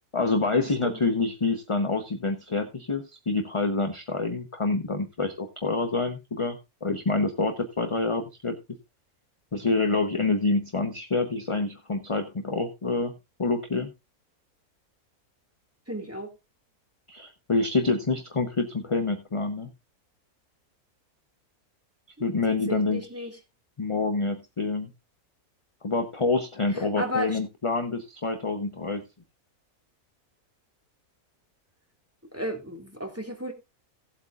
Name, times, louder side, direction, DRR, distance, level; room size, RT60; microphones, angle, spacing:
voice 1, 0.1-8.6 9.5-13.1 13.4-13.9 17.1-19.7 22.2-23.3 23.8-24.9 25.8-29.0, left 3 dB, 25° left, 6 dB, 0.7 m, -27 dB
voice 2, 15.9-16.3 22.7-23.4 26.8-27.4 32.3-33.5, equal, 10° right, 2 dB, 1.9 m, -33 dB
17.5 x 8.1 x 2.4 m, 0.24 s
omnidirectional pair, 1.6 m